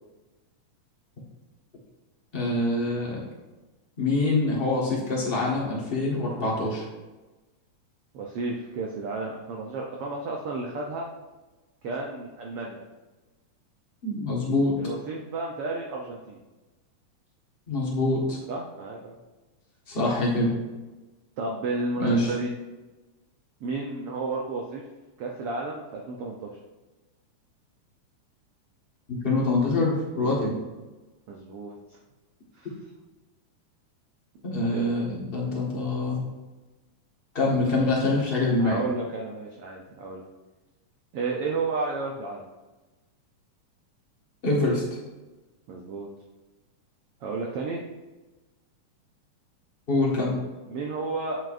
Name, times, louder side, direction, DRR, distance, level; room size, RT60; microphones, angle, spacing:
voice 1, 2.3-3.2 4.0-6.8 14.0-14.8 17.7-18.4 19.9-20.5 22.0-22.3 29.1-30.6 34.4-36.2 37.3-38.8 44.4-44.8 49.9-50.3, left 2 dB, 60° left, -5 dB, 0.5 m, -25 dB
voice 2, 8.1-11.1 11.8-12.8 14.8-16.4 18.5-19.2 21.4-22.5 23.6-24.8 25.2-26.5 30.2-30.4 31.3-31.8 32.5-32.7 34.7-34.9 38.6-40.2 41.1-42.4 45.7-46.1 47.2-47.8 50.7-51.4, right 3 dB, 80° right, -1 dB, 1.3 m, -32 dB
8.1 x 7.8 x 2.5 m, 1.2 s
omnidirectional pair, 3.5 m